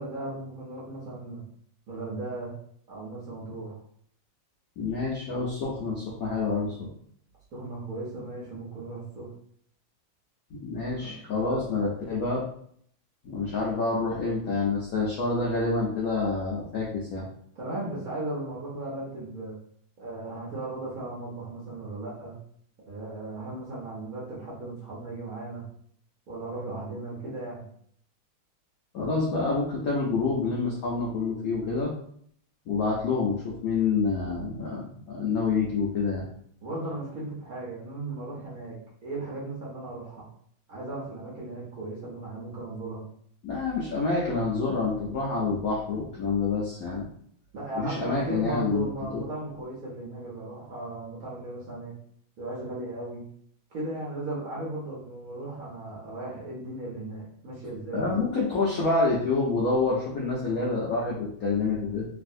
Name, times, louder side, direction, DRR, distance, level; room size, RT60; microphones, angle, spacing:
voice 1, 0.0-1.4 1.9-2.6 2.9-3.8 7.5-9.3 11.0-11.2 11.5-11.6 17.6-19.6 20.0-22.4 22.9-25.7 26.3-27.7 36.6-40.2 40.7-43.1 47.5-51.9 52.4-53.3 53.7-58.1, right 2 dB, 55° right, -5 dB, 1.0 m, -36 dB
voice 2, 4.8-6.9 10.5-12.4 13.2-17.2 28.9-31.9 32.7-36.2 43.4-47.1 47.8-48.9 49.1-49.2 57.9-62.1, left 3 dB, 70° left, -4 dB, 0.8 m, -27 dB
3.3 x 2.5 x 2.5 m, 0.64 s
omnidirectional pair, 2.2 m